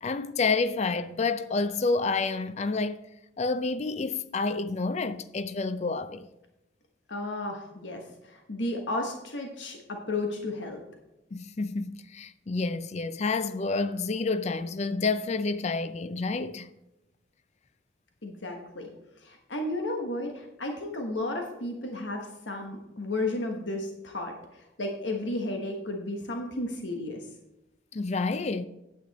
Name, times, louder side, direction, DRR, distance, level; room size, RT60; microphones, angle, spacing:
voice 1, 0.0-3.0 3.4-6.3 11.3-16.7 27.9-28.6, left 3 dB, 40° left, 0.4 m, -29 dB
voice 2, 7.1-10.8 18.2-18.9 19.2-27.3, left 2 dB, 85° left, 1.2 m, -33 dB
9.2 x 8.5 x 4.1 m
head